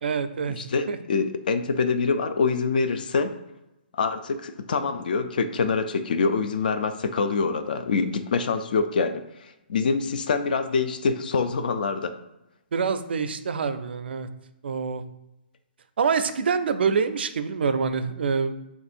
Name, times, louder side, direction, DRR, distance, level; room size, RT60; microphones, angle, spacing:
voice 1, 0.0-0.6 0.9-1.0 12.7-14.3 14.6-15.0 16.0-18.5, right 5 dB, 75° right, 11 dB, 0.4 m, -25 dB
voice 2, 0.6-3.3 4.0-9.2 9.7-12.2, left 4 dB, 55° left, 10 dB, 0.4 m, -25 dB
3.4 x 2.6 x 4.2 m, 0.93 s
hypercardioid pair, 175°, 6 cm